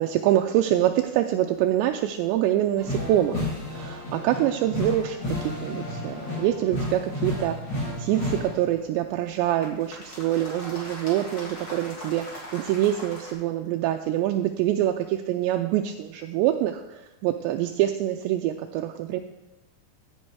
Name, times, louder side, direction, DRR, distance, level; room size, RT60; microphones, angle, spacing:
voice 1, 0.0-7.6 8.0-19.2, right 12 dB, 85° right, 5 dB, 2.7 m, -25 dB
sound 1, 2.8-8.7 9.6-13.3, left 1 dB, 30° left, 2.7 m, -33 dB
15.0 x 7.9 x 4.8 m, 1.1 s
omnidirectional pair, 5.2 m